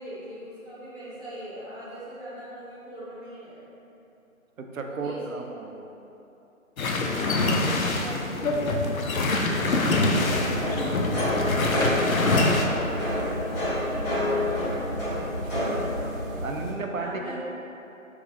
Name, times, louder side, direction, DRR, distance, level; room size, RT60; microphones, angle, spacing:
voice 1, 0.0-3.6 4.8-5.4 7.0-14.5 16.9-17.3, equal, 5° right, -19 dB, 0.9 m, -41 dB
voice 2, 4.6-5.9 15.1-15.2 15.5-16.0 16.4-17.3, right 3 dB, 70° right, 3 dB, 0.6 m, -34 dB
sound 1, 6.8-12.6, left 2 dB, 75° left, 0.6 m, -25 dB
sound 2, 10.1-16.7, left 1 dB, 15° left, 1.4 m, -28 dB
4.8 x 3.1 x 2.9 m, 2.9 s
figure-of-eight pair, 160°, 42 cm